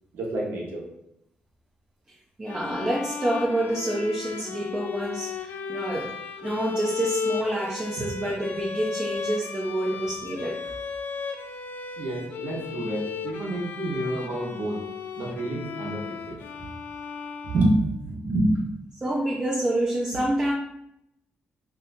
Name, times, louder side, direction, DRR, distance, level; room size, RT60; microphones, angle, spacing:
voice 1, 0.1-0.8 12.0-14.8 15.2-16.4 17.5-18.6, right 1 dB, 75° right, -2 dB, 1.1 m, -27 dB
sound 1, 2.4-18.1, left 5 dB, 65° left, 0.3 m, -35 dB
voice 2, 2.4-6.1 6.4-10.7 19.0-20.5, right 1 dB, 20° right, -2 dB, 0.5 m, -27 dB
2.8 x 2.6 x 3.4 m, 0.81 s
cardioid pair, 105°, 4 cm